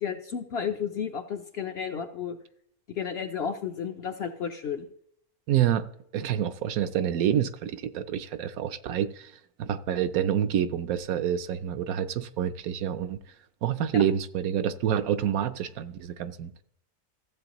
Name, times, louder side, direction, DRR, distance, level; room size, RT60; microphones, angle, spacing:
voice 1, 0.0-2.4 2.9-4.9 13.9-14.0, left 7 dB, 55° left, 0.7 m, -32 dB
voice 2, 5.5-9.3 9.6-13.2 13.6-16.5, right 10 dB, 75° right, 1.0 m, -27 dB
14.5 x 7.6 x 3.0 m
omnidirectional pair, 1.6 m